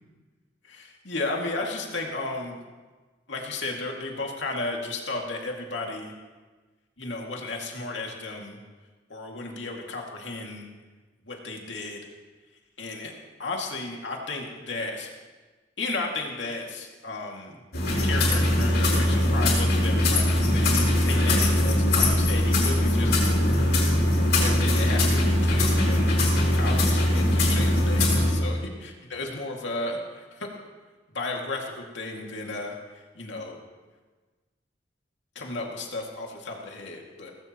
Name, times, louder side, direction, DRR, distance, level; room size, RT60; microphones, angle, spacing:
voice 1, 0.6-2.6 3.3-6.1 7.0-8.6 9.1-10.7 11.3-12.0 12.8-13.1 13.4-15.1 15.8-17.6 18.0-23.4 24.4-30.5 31.1-33.6 35.4-37.3, left 2 dB, 80° left, 0 dB, 2.2 m, -34 dB
sound 1, 17.7-28.3, left 1 dB, 60° left, 5.0 m, -21 dB
18.5 x 16.0 x 3.0 m, 1.3 s
head